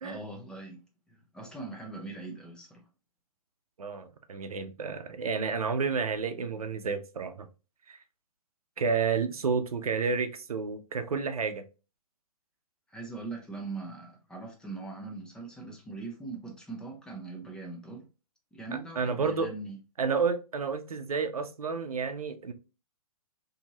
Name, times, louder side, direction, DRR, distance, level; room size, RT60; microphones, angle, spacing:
voice 1, 0.0-0.8 1.1-2.9 12.9-18.0 18.5-19.8, right 3 dB, 5° left, 0.4 m, -41 dB
voice 2, 3.8-7.5 7.9-8.0 8.8-11.6 19.0-19.5 20.0-22.5, right 5 dB, 75° right, 0.5 m, -30 dB
2.7 x 2.6 x 2.8 m
figure-of-eight pair, 120°, 19 cm